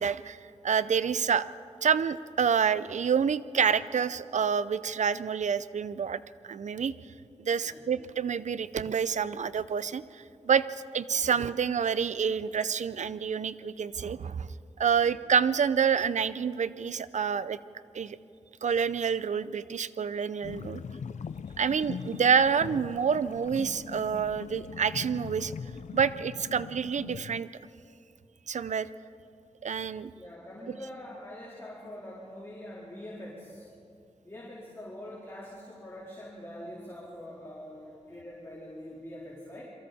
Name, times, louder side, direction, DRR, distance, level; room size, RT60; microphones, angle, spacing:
voice 1, 0.0-1.5 1.8-6.9 7.4-14.5 14.8-17.6 17.9-18.2 18.6-20.8 21.6-25.5 25.9-27.5 28.5-28.9 29.6-30.1, right 7 dB, 85° right, 15 dB, 0.6 m, -28 dB
sound 1, 20.4-27.4, left 6 dB, 85° left, 0.5 m, -41 dB
voice 2, 30.1-33.7 34.2-39.7, left 1 dB, 20° left, -8 dB, 4.1 m, -44 dB
29.0 x 23.0 x 4.3 m, 2.6 s
wide cardioid pair, 115°, 12 cm